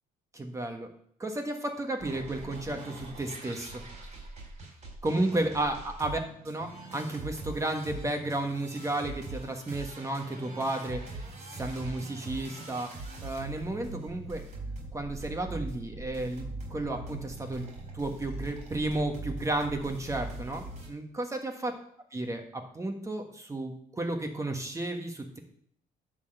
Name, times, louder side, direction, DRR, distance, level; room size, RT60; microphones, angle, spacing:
voice 1, 0.3-0.9 1.2-3.8 5.0-12.9 13.2-14.4 14.9-16.4 16.7-17.6 17.9-21.7 22.1-25.4, right 2 dB, 20° right, 4 dB, 1.5 m, -33 dB
sound 1, 2.0-20.9, right 2 dB, 40° right, 4.1 m, -42 dB
11.0 x 4.1 x 7.7 m, 0.66 s
cardioid pair, 110°, 17 cm